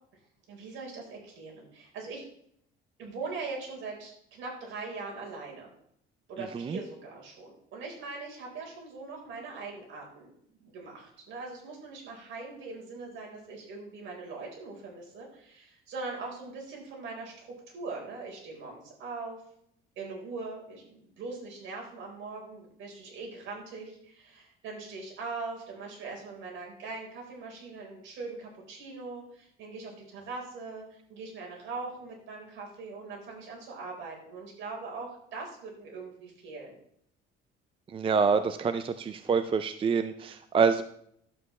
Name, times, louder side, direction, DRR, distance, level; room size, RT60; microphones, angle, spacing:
voice 1, 0.5-2.2 3.0-5.7 6.3-10.3 10.6-19.4 20.0-36.7, right 3 dB, 65° right, -1 dB, 4.3 m, -41 dB
voice 2, 37.9-40.8, right 5 dB, 25° right, 10 dB, 0.4 m, -26 dB
11.5 x 8.1 x 3.2 m, 0.69 s
cardioid pair, 110°, 21 cm